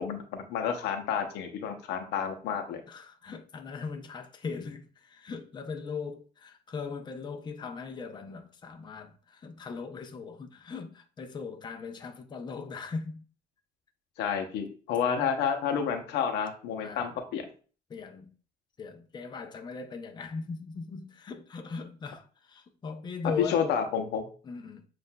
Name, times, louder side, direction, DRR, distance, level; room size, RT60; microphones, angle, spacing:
voice 1, 0.0-2.8 14.2-17.4 23.4-24.3, left 7 dB, 85° left, 0.7 m, -30 dB
voice 2, 2.9-13.2 16.8-17.2 17.9-18.3 18.8-23.9 24.4-24.9, left 5 dB, 25° left, 0.5 m, -39 dB
7.2 x 2.5 x 2.2 m
cardioid pair, 110°, 17 cm